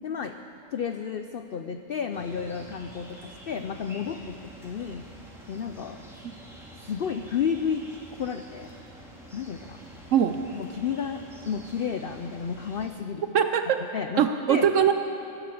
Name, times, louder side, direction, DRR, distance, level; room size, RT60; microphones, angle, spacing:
voice 1, 0.0-0.4 0.7-4.4 4.6-5.1 5.5-6.0 6.8-8.7 9.3-9.8 10.5-13.3 13.9-14.7, left 7 dB, 80° left, 8 dB, 0.5 m, -32 dB
sound 1, 2.1-12.9, equal, ahead, 2.1 m, -47 dB
voice 2, 13.3-13.8 14.2-14.9, right 8 dB, 65° right, 8 dB, 0.9 m, -21 dB
17.5 x 10.0 x 7.0 m, 2.9 s
omnidirectional pair, 1.6 m